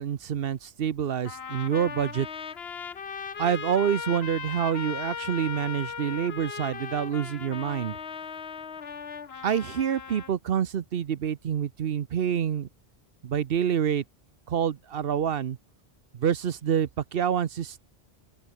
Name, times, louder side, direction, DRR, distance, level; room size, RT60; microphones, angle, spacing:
voice 1, 0.0-2.3 3.4-8.0 9.4-12.7 13.2-14.0 14.5-15.6 16.1-17.8, right 8 dB, 60° right, 0.9 m, -27 dB
Trumpet, 1.2-10.3, left 6 dB, 65° left, 1.4 m, -38 dB
open air
omnidirectional pair, 1.1 m